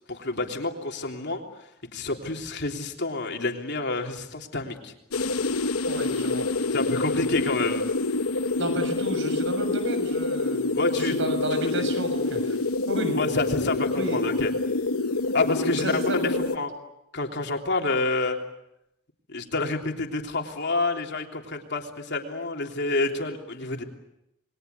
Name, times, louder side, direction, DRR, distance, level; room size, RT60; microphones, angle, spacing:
voice 1, 0.1-1.4 1.9-4.9 6.7-7.8 10.8-11.2 11.7-11.8 13.1-14.5 15.3-16.1 16.5-16.7 17.1-18.4 19.3-23.8, left 3 dB, 55° left, 3 dB, 3.3 m, -28 dB
sound 1, 5.1-16.6, left 3 dB, 80° left, 1.0 m, -27 dB
voice 2, 5.8-6.6 8.6-10.7 10.9-12.6 12.9-13.2 14.0-14.2 15.8-16.3, right 1 dB, 60° right, 8 dB, 6.5 m, -32 dB
28.0 x 22.0 x 8.3 m, 0.84 s
head